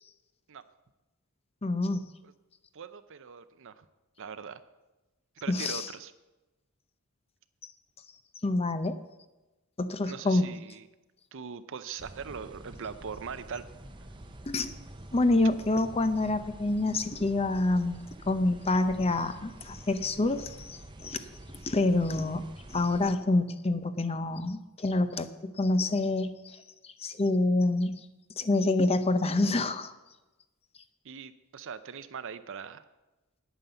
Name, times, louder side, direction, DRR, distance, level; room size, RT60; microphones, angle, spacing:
voice 1, 1.6-2.1 5.5-5.9 8.4-9.0 9.8-10.5 14.5-14.7 15.1-18.0 18.3-20.8 21.0-21.2 21.6-22.5 22.7-26.4 27.0-28.0 28.4-29.9, left 2 dB, 25° left, 11 dB, 0.6 m, -27 dB
voice 2, 2.7-3.9 4.2-4.6 5.4-6.1 10.0-10.9 11.3-13.6 31.0-32.8, right 6 dB, 60° right, 12 dB, 0.6 m, -41 dB
sound 1, 12.0-23.2, right 1 dB, 20° right, 0.7 m, -48 dB
9.8 x 9.0 x 6.9 m, 1.1 s
head